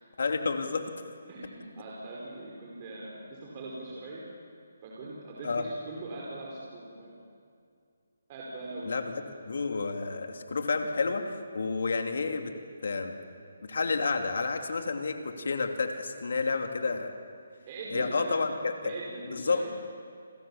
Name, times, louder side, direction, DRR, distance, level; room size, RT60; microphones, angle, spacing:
voice 1, 0.2-0.9 5.4-5.7 8.8-12.5 12.8-13.2 13.6-17.1 17.9-18.9 19.3-19.7, left 4 dB, 65° left, 5 dB, 2.9 m, -30 dB
voice 2, 1.3-4.2 4.8-7.1 8.3-9.1 17.7-18.4 18.8-19.7, right 2 dB, 30° right, -4 dB, 5.2 m, -41 dB
30.0 x 23.0 x 7.3 m, 2.3 s
figure-of-eight pair, 155°, 0 cm